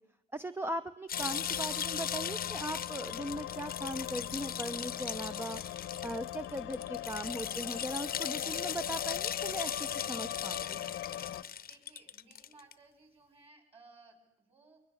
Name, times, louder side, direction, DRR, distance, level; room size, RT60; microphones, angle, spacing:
voice 1, 0.3-5.6 6.0-10.8, right 1 dB, 10° right, 10 dB, 0.8 m, -39 dB
sound 1, 1.1-11.4, left 13 dB, 90° left, 1.0 m, -41 dB
sound 2, 1.1-12.7, left 8 dB, 50° left, 0.9 m, -38 dB
voice 2, 11.6-14.8, right 3 dB, 30° right, 6 dB, 6.7 m, -60 dB
22.0 x 20.5 x 7.2 m, 0.84 s
cardioid pair, 90°, 20 cm